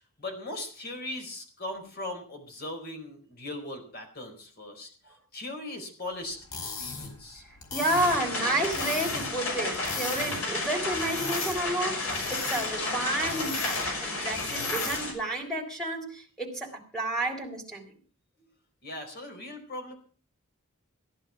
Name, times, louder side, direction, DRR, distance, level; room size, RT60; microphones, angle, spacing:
voice 1, 0.0-4.9 5.3-7.4 18.4-18.5 18.8-19.9, left 1 dB, 45° left, 4 dB, 4.4 m, -39 dB
sound 1, 6.3-15.2, left 4 dB, 85° left, 4.7 m, -39 dB
voice 2, 7.7-17.8, right 1 dB, 5° left, 1 dB, 3.7 m, -31 dB
sound 2, 7.8-15.1, left 2 dB, 70° left, 5.7 m, -32 dB
15.5 x 11.0 x 5.8 m, 0.42 s
head